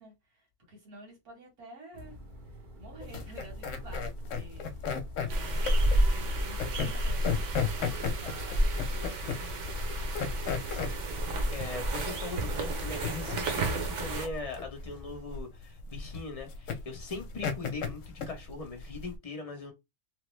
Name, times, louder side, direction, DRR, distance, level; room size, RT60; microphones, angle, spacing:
voice 1, 0.0-2.2 2.8-4.7 5.2-7.5 7.9-10.1, right 1 dB, 85° right, 1.8 m, -51 dB
sound 1, 1.9-15.2, left 2 dB, 40° right, 0.7 m, -48 dB
sound 2, 3.0-19.2, left 6 dB, 65° left, 0.9 m, -35 dB
sound 3, 5.3-14.3, right 1 dB, 60° right, 1.0 m, -31 dB
voice 2, 10.7-19.7, left 3 dB, 30° left, 0.8 m, -41 dB
3.3 x 2.1 x 3.1 m
omnidirectional pair, 1.5 m